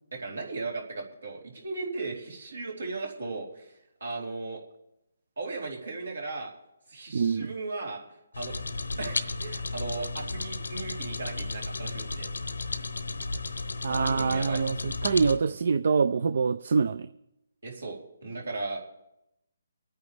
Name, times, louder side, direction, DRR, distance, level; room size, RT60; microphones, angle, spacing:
voice 1, 0.1-4.6 5.4-6.5 6.9-8.0 8.4-8.6 9.0-12.3 13.9-14.6 15.5-15.6 17.6-18.8, right 3 dB, 80° right, -1 dB, 3.6 m, -36 dB
voice 2, 7.1-7.5 13.8-17.1, right 5 dB, 60° right, 13 dB, 0.5 m, -25 dB
sound 1, 8.3-15.4, left 3 dB, 90° left, 0.9 m, -34 dB
25.0 x 9.2 x 3.4 m, 0.88 s
hypercardioid pair, 150°, 0 cm